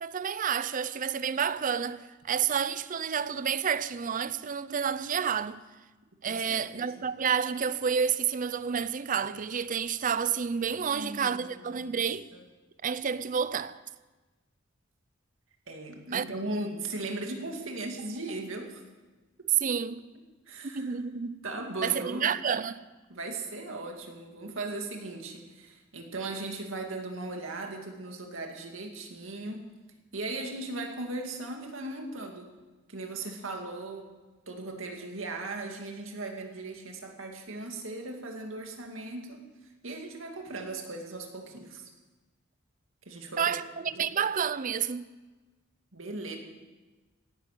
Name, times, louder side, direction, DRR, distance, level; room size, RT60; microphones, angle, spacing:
voice 1, 0.0-5.6 6.2-12.3 12.8-13.8 16.1-16.7 19.5-20.0 20.7-21.4 21.8-22.8 43.4-45.1, right 7 dB, 40° right, 0.5 m, -30 dB
voice 2, 6.3-7.0 10.7-11.9 12.3-12.4 15.7-18.8 19.6-19.7 20.5-21.0 21.4-22.3 23.1-29.7 30.1-32.5 32.9-34.1 34.5-39.4 39.8-41.9 43.1-43.6 43.9-44.1 45.9-46.4, right 2 dB, 70° right, 2.4 m, -38 dB
17.5 x 11.0 x 6.7 m
head